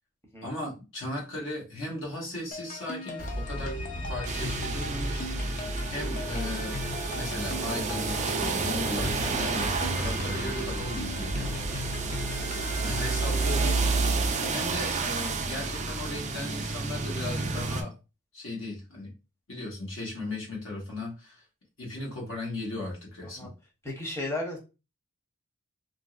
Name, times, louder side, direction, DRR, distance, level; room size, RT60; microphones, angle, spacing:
voice 1, 0.4-3.8 4.1-6.8 7.1-11.5 12.8-13.8 14.5-18.0 18.3-19.1 19.5-21.4 21.8-23.5, left 2 dB, 60° left, -2 dB, 1.1 m, -37 dB
sound 1, 2.5-14.8, left 2 dB, 35° left, 0.5 m, -40 dB
sound 2, 3.2-14.6, equal, 85° left, 1.4 m, -37 dB
sound 3, 4.2-17.8, right 4 dB, 30° right, 0.4 m, -30 dB
voice 2, 23.8-24.6, left 2 dB, 10° left, -1 dB, 0.8 m, -35 dB
2.9 x 2.6 x 2.4 m, 0.29 s
head